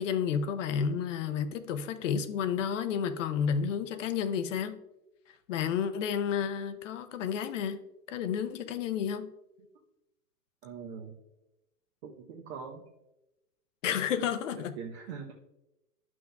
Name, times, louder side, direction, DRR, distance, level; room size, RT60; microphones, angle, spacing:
voice 1, 0.0-4.8 5.5-7.8 8.1-9.3 13.8-14.7, left 7 dB, 50° left, 11 dB, 0.8 m, -31 dB
voice 2, 10.6-11.2 12.0-12.8 14.5-15.3, right 6 dB, 40° right, 0 dB, 0.9 m, -42 dB
11.5 x 6.1 x 2.3 m, 0.94 s
hypercardioid pair, 135°, 48 cm